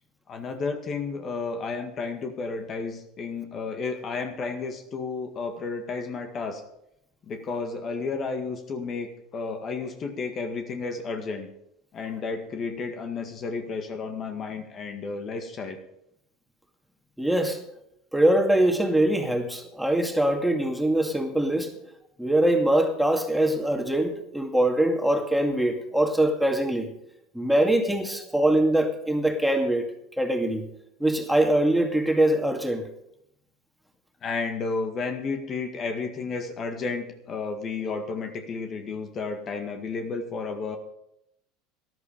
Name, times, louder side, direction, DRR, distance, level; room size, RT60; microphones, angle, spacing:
voice 1, 0.3-6.6 7.3-11.5 11.9-15.8 34.2-40.8, left 4 dB, 40° left, 5 dB, 1.9 m, -32 dB
voice 2, 17.2-17.6 18.1-21.7 22.2-26.9 27.3-29.9 30.2-30.7 31.0-32.9, right 1 dB, ahead, 3 dB, 2.3 m, -23 dB
13.0 x 11.5 x 5.2 m, 0.78 s
hypercardioid pair, 85°, 0 cm